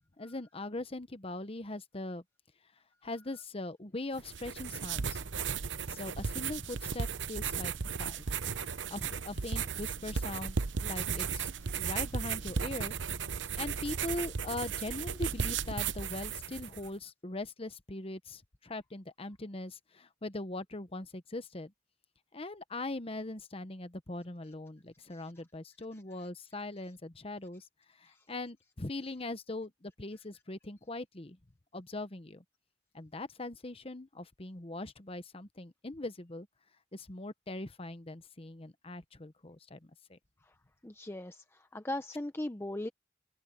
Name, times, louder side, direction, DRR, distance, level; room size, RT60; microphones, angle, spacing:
voice 1, 0.2-2.2 3.0-5.2 5.9-8.2 8.5-11.5 11.8-12.9 13.6-21.7 22.3-27.6 28.0-31.4 31.7-32.4 32.9-36.5 36.9-40.2, left 2 dB, 30° left, 1.0 m, -41 dB
sound 1, 4.2-16.9, right 6 dB, 85° right, 0.8 m, -35 dB
voice 2, 40.8-42.9, left 1 dB, 15° left, 0.7 m, -40 dB
open air
head